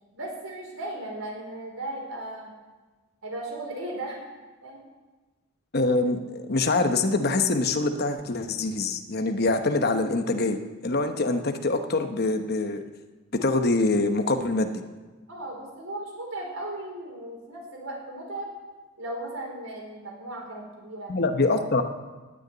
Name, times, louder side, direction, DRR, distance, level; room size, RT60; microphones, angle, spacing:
voice 1, 0.1-2.5 3.2-4.2 4.6-4.8 15.3-18.5 19.0-21.1, right 1 dB, 90° right, 0 dB, 4.4 m, -36 dB
voice 2, 5.7-10.6 10.8-12.8 13.4-14.8 21.1-21.8, left 2 dB, 50° left, 6 dB, 1.0 m, -24 dB
18.0 x 6.8 x 8.6 m, 1.3 s
head